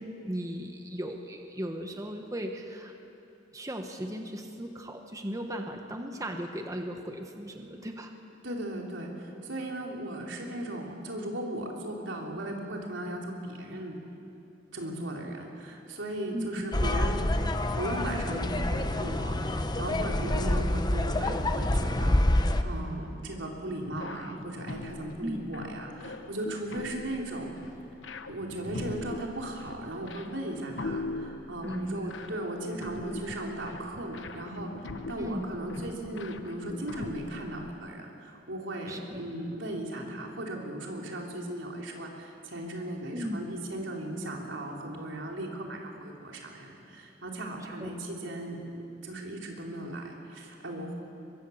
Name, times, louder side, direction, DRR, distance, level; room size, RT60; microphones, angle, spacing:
voice 1, 0.0-2.9 3.5-8.1 16.3-16.6 25.2-25.4 31.6-32.0 35.2-35.5 38.9-39.2 43.1-43.6 47.8-47.9, equal, 20° right, 4 dB, 1.3 m, -36 dB
voice 2, 8.4-14.0 14.7-17.2 17.7-27.5 28.3-34.7 35.1-50.9, right 1 dB, 85° right, 0 dB, 3.6 m, -37 dB
sound 1, 16.7-22.6, left 1 dB, 20° left, 0.9 m, -27 dB
sound 2, 23.9-37.7, left 3 dB, 85° left, 1.1 m, -42 dB
23.0 x 23.0 x 7.2 m, 2.8 s
head